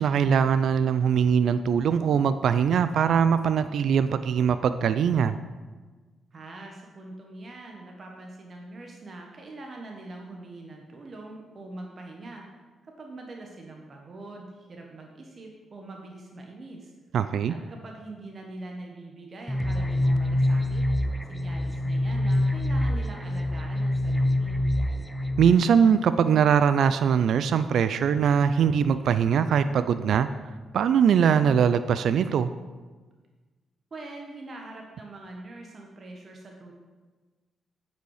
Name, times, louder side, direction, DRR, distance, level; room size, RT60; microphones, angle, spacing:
voice 1, 0.0-5.3 17.1-17.5 25.4-30.3 30.7-32.5, right 7 dB, 70° right, 12 dB, 0.3 m, -22 dB
voice 2, 6.3-12.4 12.8-16.9 17.5-20.8 21.3-24.6 33.9-36.7, right 2 dB, 50° right, 1 dB, 1.2 m, -43 dB
sound 1, 19.5-25.5, left 1 dB, 10° left, 0.7 m, -25 dB
9.0 x 5.5 x 4.9 m, 1.3 s
supercardioid pair, 60°, 0 cm